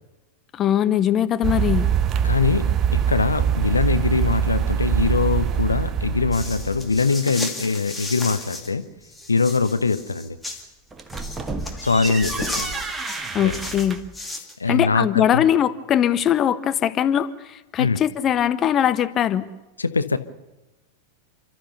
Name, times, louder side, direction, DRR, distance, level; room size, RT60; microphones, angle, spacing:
voice 1, 0.5-1.9 13.3-14.0 14.7-19.5, left 10 dB, 30° left, 14 dB, 0.8 m, -21 dB
sound 1, 1.4-7.0, right 8 dB, 30° right, 0.6 m, -23 dB
voice 2, 2.2-8.9 9.3-10.4 11.8-12.8 13.4-13.6 14.6-15.5 17.8-18.0 19.8-20.2, left 4 dB, 80° left, 11 dB, 0.9 m, -22 dB
sound 2, 6.3-8.7 9.0-10.6 11.1-14.5, left 2 dB, 10° left, 2.4 m, -34 dB
sound 3, 10.9-14.2, right 3 dB, 15° right, 1.4 m, -32 dB
29.5 x 13.0 x 6.8 m, 1.1 s
figure-of-eight pair, 90°, 0 cm